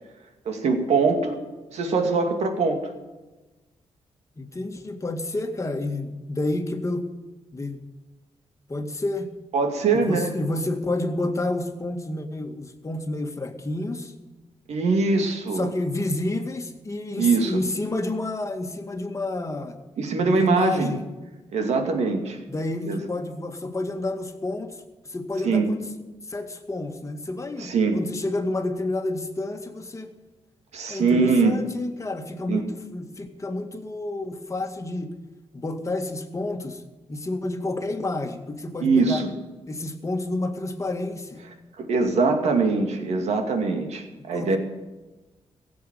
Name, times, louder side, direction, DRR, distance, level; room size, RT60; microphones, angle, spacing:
voice 1, 0.5-1.4 1.7-2.9 9.5-10.3 14.7-15.7 17.2-17.6 20.0-20.9 21.5-22.4 22.8-23.0 25.4-25.7 27.6-28.0 30.7-31.6 32.5-32.6 38.8-39.3 41.8-44.6, right 4 dB, 75° right, 5 dB, 2.4 m, -22 dB
voice 2, 4.4-7.1 7.5-7.8 8.7-9.3 10.1-14.1 15.5-19.8 20.2-21.0 22.5-24.8 25.0-25.8 26.3-30.1 30.9-35.1 35.5-36.8 37.1-39.2 39.7-41.4 44.3-44.6, left 2 dB, 25° left, 5 dB, 1.9 m, -29 dB
16.0 x 7.8 x 9.2 m, 1.1 s
cardioid pair, 80°, 11 cm